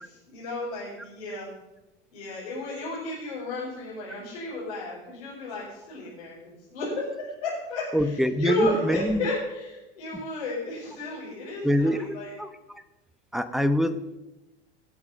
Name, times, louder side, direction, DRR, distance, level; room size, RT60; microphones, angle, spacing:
voice 1, 0.0-1.5 2.1-12.3, left 2 dB, 75° left, -8 dB, 5.2 m, -33 dB
voice 2, 7.9-9.3 11.6-12.0 12.4-12.8 13.3-14.2, equal, ahead, 11 dB, 1.0 m, -25 dB
19.0 x 7.3 x 5.6 m, 0.99 s
figure-of-eight pair, 75°, 33 cm